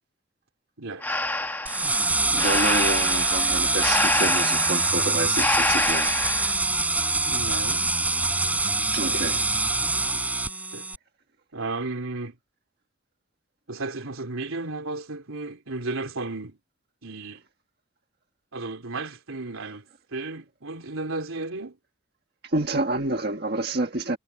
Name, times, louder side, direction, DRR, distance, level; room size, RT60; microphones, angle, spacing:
Breathing, 1.0-6.5, left 2 dB, 10° left, 1.2 m, -27 dB
sound 1, 1.7-11.0, right 2 dB, 5° right, 5.4 m, -24 dB
voice 1, 1.8-6.2 8.9-9.5 22.4-24.2, right 2 dB, 50° right, 1.6 m, -29 dB
voice 2, 7.3-7.9 10.7-10.9 11.5-12.3 13.7-16.6 17.0-17.4 18.5-19.8 20.1-21.8, right 3 dB, 85° right, 3.2 m, -33 dB
head